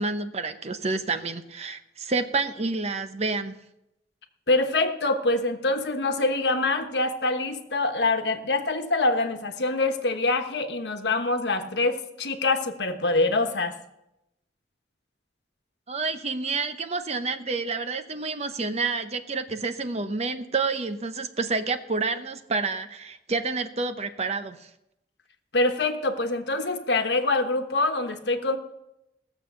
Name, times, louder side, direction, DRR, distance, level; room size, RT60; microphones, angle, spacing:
voice 1, 0.0-3.6 15.9-24.7, right 3 dB, 40° right, 9 dB, 0.8 m, -29 dB
voice 2, 4.5-13.7 25.5-28.6, left 2 dB, 70° left, 6 dB, 1.3 m, -25 dB
17.5 x 7.1 x 6.9 m, 0.88 s
head